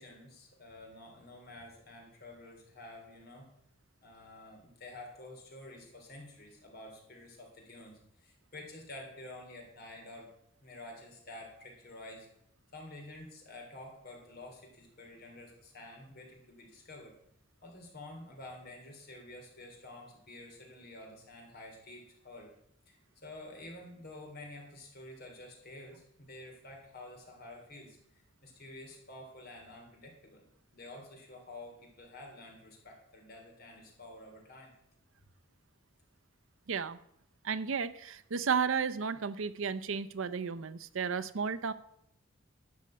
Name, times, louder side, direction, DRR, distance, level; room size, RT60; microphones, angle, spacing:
voice 1, 0.0-3.5 4.0-10.3 10.6-12.3 12.7-17.1 17.6-22.5 22.9-23.0 23.2-30.4 30.7-34.7, left 2 dB, 50° left, 1 dB, 3.4 m, -49 dB
voice 2, 36.7-37.0 37.4-41.7, right 6 dB, 75° right, 12 dB, 0.6 m, -33 dB
12.5 x 5.2 x 8.5 m, 0.75 s
head